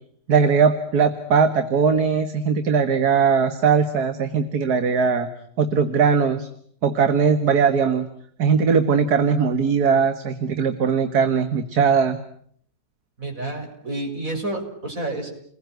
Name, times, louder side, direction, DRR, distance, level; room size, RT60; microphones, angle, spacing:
voice 1, 0.3-5.3 5.6-6.5 6.8-8.0 8.4-12.2, right 6 dB, 75° right, 9 dB, 2.2 m, -19 dB
voice 2, 13.2-15.3, right 2 dB, 60° right, 3 dB, 6.9 m, -29 dB
30.0 x 21.5 x 9.4 m, 0.65 s
omnidirectional pair, 1.7 m